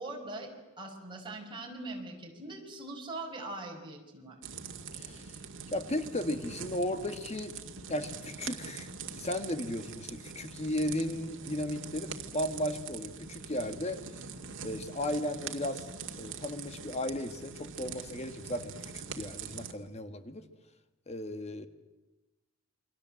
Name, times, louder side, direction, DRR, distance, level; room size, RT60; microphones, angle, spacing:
voice 1, 0.0-4.4, right 2 dB, 25° right, 0 dB, 5.6 m, -42 dB
sound 1, 4.4-19.7, right 5 dB, 65° right, 2.1 m, -43 dB
voice 2, 4.9-5.4 5.7-7.5 7.9-14.0 14.6-15.9 16.1-20.4 21.1-21.7, left 1 dB, 30° left, 9 dB, 1.6 m, -35 dB
28.5 x 24.0 x 7.7 m, 1.1 s
head